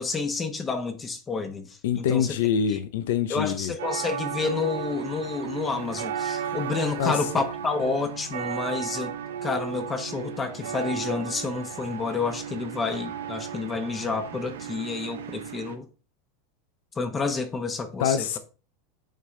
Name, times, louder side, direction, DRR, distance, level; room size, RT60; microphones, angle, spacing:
voice 1, 0.0-2.3 2.7-2.8 3.3-9.1 9.4-15.9 17.0-18.2, left 4 dB, 25° left, 1.0 m, -29 dB
voice 2, 1.8-3.7 6.4-6.6 7.0-7.2 18.0-18.4, left 8 dB, 75° left, 0.6 m, -25 dB
sound 1, 3.8-15.7, right 8 dB, 85° right, 0.7 m, -35 dB
8.9 x 3.7 x 3.2 m
hypercardioid pair, 100°, 0 cm